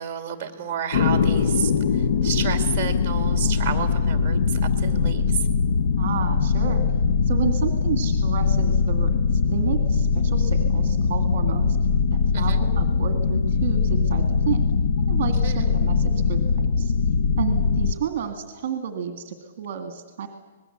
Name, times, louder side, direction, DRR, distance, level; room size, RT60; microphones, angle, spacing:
voice 1, 0.0-5.4 12.3-12.6 15.4-15.6, right 8 dB, 20° right, 7 dB, 2.5 m, -31 dB
sound 1, 0.9-17.9, left 5 dB, 55° left, 0.8 m, -21 dB
voice 2, 6.0-6.8 7.3-11.8 12.1-14.6 15.0-16.9 17.4-20.3, right 8 dB, 40° right, 7 dB, 1.9 m, -31 dB
26.0 x 20.0 x 7.9 m, 1.3 s
hypercardioid pair, 175°, 0 cm